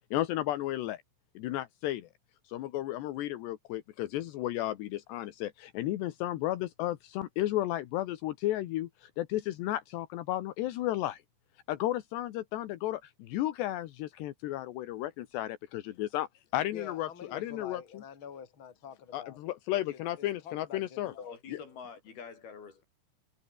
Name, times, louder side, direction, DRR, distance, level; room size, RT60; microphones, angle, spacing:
voice 1, 0.1-1.0 1.4-2.1 2.5-11.2 11.7-16.3 16.5-17.8 19.1-21.1 21.5-21.6, left 14 dB, 80° left, 3.4 m, -33 dB
voice 2, 16.7-19.4 19.9-21.3, left 7 dB, 30° left, 3.5 m, -47 dB
voice 3, 21.1-22.8, left 6 dB, 60° left, 6.3 m, -46 dB
omnidirectional pair, 5.0 m